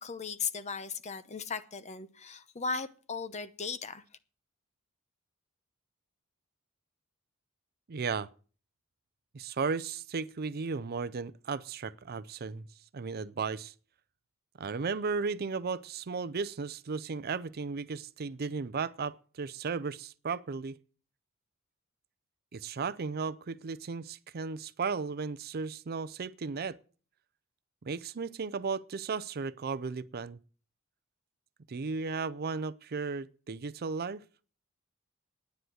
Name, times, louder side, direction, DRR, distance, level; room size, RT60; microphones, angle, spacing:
voice 1, 0.0-4.0, left 5 dB, 35° left, 0.8 m, -37 dB
voice 2, 7.9-8.3 9.3-12.6 12.9-13.7 14.6-20.8 22.5-26.8 27.8-30.4 31.7-34.2, right 5 dB, 45° right, 0.5 m, -35 dB
10.5 x 9.4 x 7.9 m
head